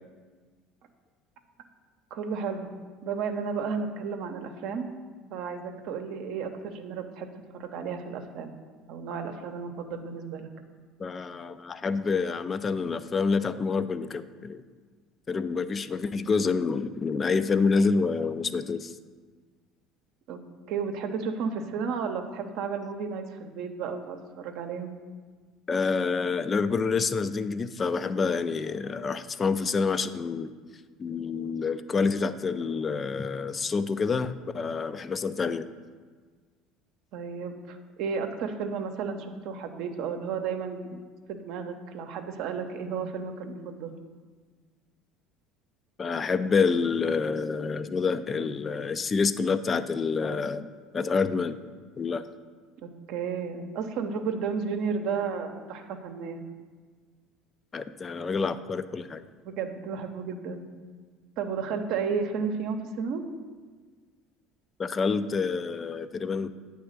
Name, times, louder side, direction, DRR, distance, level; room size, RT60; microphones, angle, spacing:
voice 1, 2.1-2.7 3.0-4.9 5.3-7.3 7.5-8.5 8.9-10.5 20.3-20.4 20.7-24.9 37.1-41.0 41.3-43.9 52.8-56.4 59.4-60.7 61.4-63.2, right 5 dB, 70° right, 5 dB, 0.7 m, -33 dB
voice 2, 11.0-14.6 15.3-18.9 25.7-30.5 31.0-35.7 46.0-50.7 50.9-51.6 52.0-52.3 57.7-59.2 64.8-66.5, left 4 dB, 30° left, 12 dB, 0.4 m, -27 dB
8.6 x 3.5 x 6.5 m, 1.5 s
supercardioid pair, 85°, 0 cm